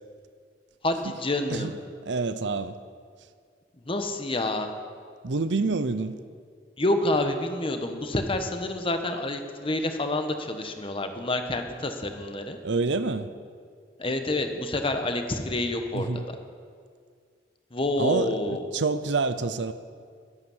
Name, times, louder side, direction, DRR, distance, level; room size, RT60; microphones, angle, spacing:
voice 1, 0.8-1.7 3.8-4.7 6.8-12.6 14.0-16.4 17.7-18.6, left 2 dB, 30° left, 6 dB, 1.2 m, -28 dB
voice 2, 2.1-2.8 5.2-6.2 12.6-13.3 15.9-16.2 18.0-19.7, right 3 dB, 70° right, 12 dB, 0.7 m, -27 dB
12.5 x 11.0 x 7.3 m, 2.1 s
head